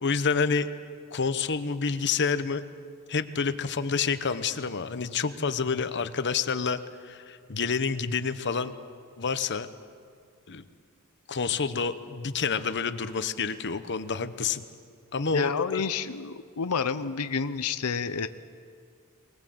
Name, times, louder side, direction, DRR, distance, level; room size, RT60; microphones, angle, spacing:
voice 1, 0.0-0.7 1.1-2.6 3.1-8.7 9.2-9.7 10.5-10.7 11.3-14.6 15.1-15.8, left 5 dB, 55° left, 11 dB, 1.0 m, -28 dB
voice 2, 15.3-18.3, left 5 dB, 85° left, 11 dB, 0.7 m, -29 dB
23.5 x 20.0 x 7.9 m, 2.2 s
head